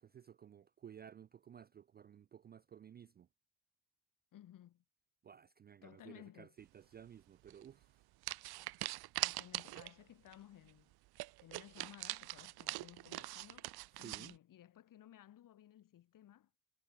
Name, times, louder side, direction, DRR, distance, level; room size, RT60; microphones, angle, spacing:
voice 1, 0.0-3.3 5.2-7.9 14.0-14.4, right 9 dB, 25° right, 0.3 m, -56 dB
voice 2, 4.3-4.8 5.8-6.5 9.2-10.9 11.4-16.5, left 12 dB, 55° left, 4.5 m, -58 dB
sound 1, 7.5-7.7 8.2-10.0 10.3-10.4 10.7-10.8 11.2-14.3, right 19 dB, 70° right, 0.8 m, -42 dB
cardioid pair, 155°, 39 cm